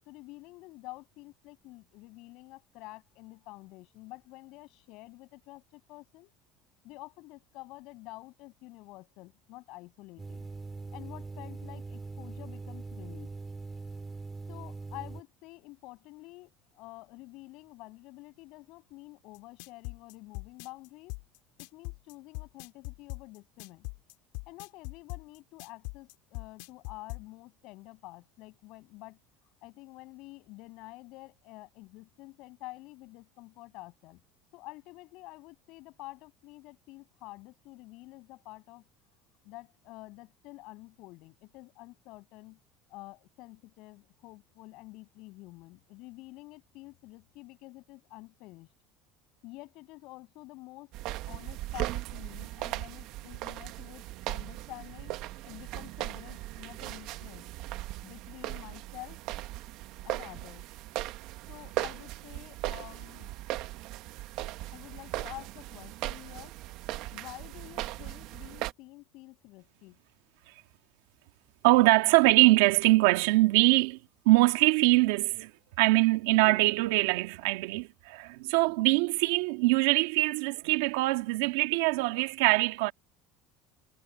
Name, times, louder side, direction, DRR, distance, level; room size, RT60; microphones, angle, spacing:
voice 1, 0.0-6.3 6.8-10.5 10.9-13.3 14.5-21.1 21.6-23.9 24.5-29.2 29.6-34.2 34.5-38.8 39.4-42.6 42.9-48.7 49.4-50.9 51.3-55.1 55.4-57.5 58.0-59.2 60.0-60.7 61.5-63.3 64.7-66.5 67.1-70.0, left 21 dB, 55° left, 6.7 m, -48 dB
sound 1, 10.2-15.2, right 3 dB, 10° right, 5.5 m, -42 dB
sound 2, 19.3-27.2, left 30 dB, 75° left, 4.2 m, -40 dB
sound 3, 50.9-68.7, right 16 dB, 55° right, 1.1 m, -38 dB
voice 2, 71.6-74.0 74.3-75.5 75.8-82.9, right 21 dB, 85° right, 1.9 m, -23 dB
cardioid pair, 160°, 0 cm